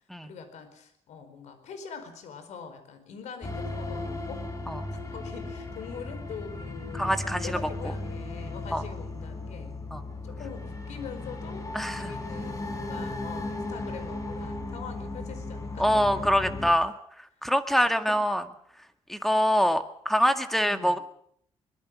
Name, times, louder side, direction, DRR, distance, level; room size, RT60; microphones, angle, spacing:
voice 1, 0.2-4.4 5.1-9.7 10.2-11.7 11.9-16.7 17.7-18.2 20.6-21.0, left 6 dB, 85° left, 9 dB, 4.7 m, -43 dB
sound 1, 3.4-16.7, left 2 dB, 30° left, 4.9 m, -36 dB
voice 2, 6.9-7.6 7.8-7.9 8.7-8.8 9.9-10.1 11.7-12.1 15.8-18.4 19.1-21.0, equal, ahead, 8 dB, 1.8 m, -25 dB
23.0 x 21.5 x 6.3 m, 0.67 s
cardioid pair, 120°, 12 cm